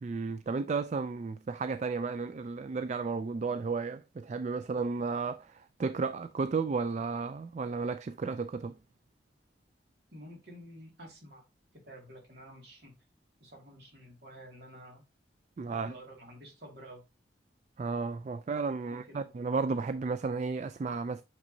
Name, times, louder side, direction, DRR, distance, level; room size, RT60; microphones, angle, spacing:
voice 1, 0.0-8.8 15.6-15.9 17.8-21.2, right 4 dB, 40° right, 0.3 m, -33 dB
voice 2, 10.1-11.4 11.7-12.9 13.4-15.0 15.7-17.0 18.8-19.3, equal, 60° right, 2.2 m, -50 dB
6.5 x 5.8 x 2.7 m
head